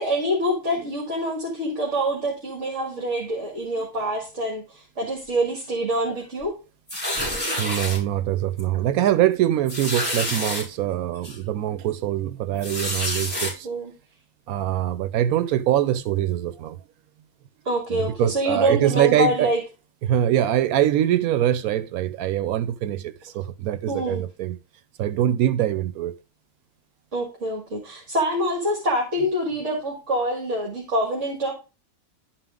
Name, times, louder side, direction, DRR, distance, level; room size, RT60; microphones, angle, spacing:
voice 1, 0.0-6.6 13.6-13.9 17.7-19.6 23.9-24.3 27.1-31.5, right 1 dB, 55° right, 2.2 m, -25 dB
sound 1, 6.9-8.0 8.6-8.8 9.0-9.1 9.7-10.6 11.2-11.4 12.6-13.5, left 1 dB, 5° left, 4.8 m, -28 dB
voice 2, 7.6-13.7 14.5-16.8 17.9-19.5 20.0-24.6 25.0-26.2, right 12 dB, 85° right, 1.1 m, -23 dB
11.5 x 5.0 x 3.6 m
omnidirectional pair, 1.5 m